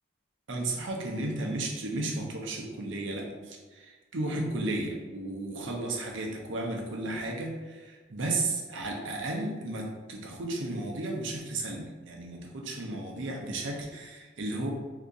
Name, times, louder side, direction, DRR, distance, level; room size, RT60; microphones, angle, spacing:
voice 1, 0.5-14.7, right 2 dB, 70° right, 0 dB, 0.7 m, -34 dB
2.8 x 2.5 x 3.6 m, 1.3 s
head